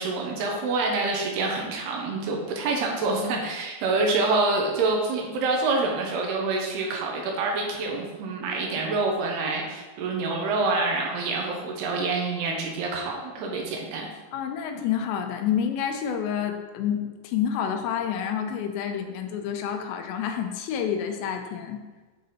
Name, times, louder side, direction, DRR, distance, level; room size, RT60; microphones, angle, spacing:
voice 1, 0.0-14.1, right 3 dB, 80° right, 0 dB, 2.7 m, -27 dB
voice 2, 14.3-21.8, left 8 dB, 90° left, 5 dB, 2.9 m, -28 dB
7.6 x 3.9 x 4.1 m, 1.3 s
omnidirectional pair, 4.9 m